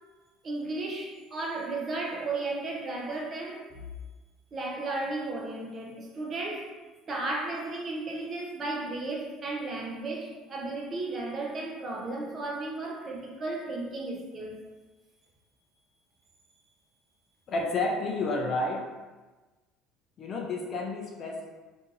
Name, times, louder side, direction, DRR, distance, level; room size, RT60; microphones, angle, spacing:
voice 1, 0.4-3.6 4.5-6.7 7.1-14.6, right 2 dB, 25° right, -2 dB, 0.6 m, -34 dB
voice 2, 17.5-18.9 20.2-21.5, left 2 dB, 30° left, 0 dB, 0.4 m, -30 dB
2.7 x 2.6 x 3.8 m, 1.2 s
cardioid pair, 165°, 0 cm